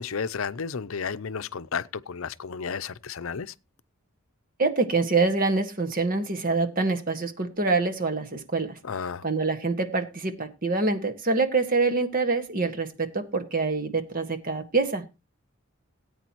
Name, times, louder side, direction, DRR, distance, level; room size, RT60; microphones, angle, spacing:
voice 1, 0.0-3.5 8.8-9.2, left 6 dB, 70° left, 0.6 m, -32 dB
voice 2, 4.6-8.8 9.2-15.0, right 3 dB, 40° right, 1.7 m, -25 dB
18.0 x 9.1 x 3.0 m
head